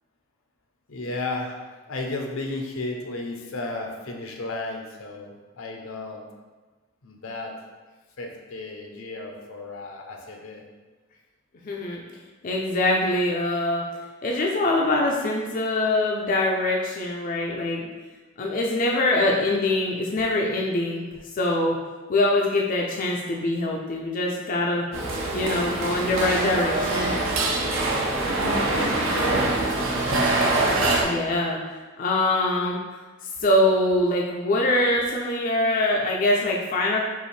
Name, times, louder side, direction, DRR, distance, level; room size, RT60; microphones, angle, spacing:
voice 1, 0.9-1.6 1.9-6.2 7.0-7.5 8.2-10.6 28.6-29.7, left 2 dB, 80° left, 1 dB, 0.7 m, -34 dB
voice 2, 11.6-12.0 12.4-13.8 14.2-17.9 18.4-21.1 21.3-21.8 22.1-24.8 25.3-27.2 31.0-31.6 32.0-32.8 33.4-37.0, left 1 dB, 40° left, -1 dB, 0.4 m, -23 dB
sound 1, 24.9-31.0, right 2 dB, 65° right, 0.7 m, -24 dB
5.4 x 2.5 x 3.2 m, 1.3 s
head